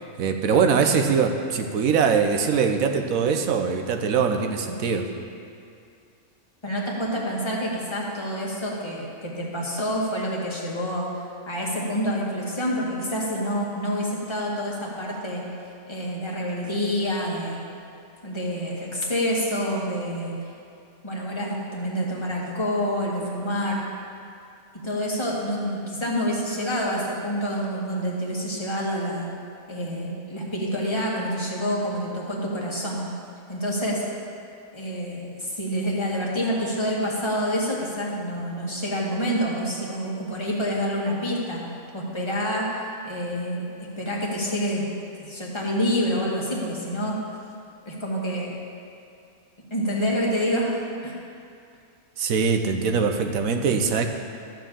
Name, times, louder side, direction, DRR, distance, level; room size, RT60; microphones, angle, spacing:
voice 1, 0.2-5.1 52.2-54.1, right 6 dB, 75° right, 5 dB, 1.2 m, -22 dB
voice 2, 6.6-11.1 11.5-15.5 15.9-17.6 18.2-20.3 21.0-23.8 24.8-29.3 29.7-33.0 33.5-34.0 34.7-41.6 41.9-44.9 45.2-47.2 47.9-48.6 49.7-51.2, equal, 20° left, -4 dB, 1.7 m, -27 dB
13.5 x 4.6 x 7.4 m, 2.5 s
omnidirectional pair, 1.5 m